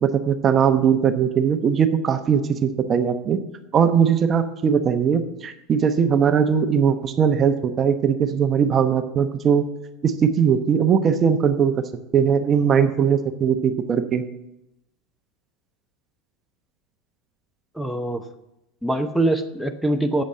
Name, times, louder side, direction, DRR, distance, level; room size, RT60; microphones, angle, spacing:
voice 1, 0.0-3.4 3.7-9.7 10.0-11.7 12.1-14.2, right 7 dB, 35° right, 9 dB, 0.9 m, -20 dB
voice 2, 17.7-18.2 18.8-20.2, right 1 dB, ahead, 8 dB, 0.9 m, -23 dB
8.5 x 7.8 x 7.4 m, 0.90 s
hypercardioid pair, 110°, 0 cm